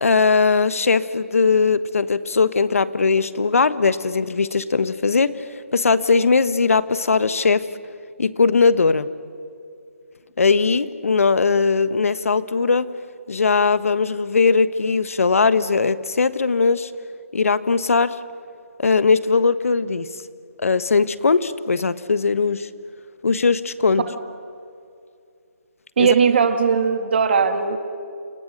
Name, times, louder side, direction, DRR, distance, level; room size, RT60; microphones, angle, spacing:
voice 1, 0.0-7.7 8.2-9.1 10.4-12.9 13.3-16.9 17.3-18.2 18.8-20.1 20.6-22.7 23.2-24.0 26.0-26.1, left 4 dB, 70° left, 14 dB, 1.3 m, -19 dB
voice 2, 26.0-27.8, right 6 dB, 45° right, 8 dB, 2.1 m, -18 dB
28.5 x 28.5 x 6.7 m, 2.5 s
hypercardioid pair, 160°, 8 cm